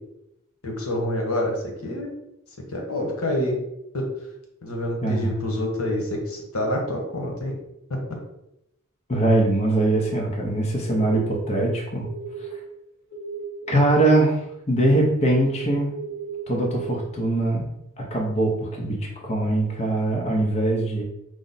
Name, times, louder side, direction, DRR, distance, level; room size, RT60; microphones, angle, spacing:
voice 1, 0.6-2.1 2.7-3.5 3.9-4.1 4.6-7.5, left 1 dB, 85° left, 1 dB, 1.0 m, -27 dB
voice 2, 5.0-5.3 9.1-12.1 12.4-12.5 13.7-15.9 16.5-17.7 18.0-21.0, right 1 dB, 30° left, -1 dB, 0.7 m, -22 dB
sound 1, 10.9-11.5 12.0-12.5 13.1-14.1 15.2-16.9, right 5 dB, 50° left, 1.1 m, -35 dB
4.8 x 2.0 x 4.0 m, 0.83 s
head